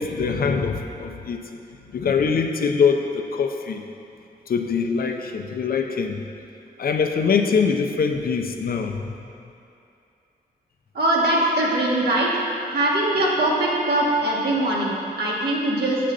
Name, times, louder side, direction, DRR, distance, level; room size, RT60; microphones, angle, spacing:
voice 1, 0.0-1.4 1.9-3.8 4.5-6.2 6.8-9.1, left 5 dB, 65° left, 4 dB, 0.6 m, -23 dB
voice 2, 10.9-12.3 12.7-16.0, right 1 dB, 80° right, -5 dB, 1.5 m, -21 dB
7.6 x 6.8 x 3.9 m, 2.7 s
wide cardioid pair, 105°, 17 cm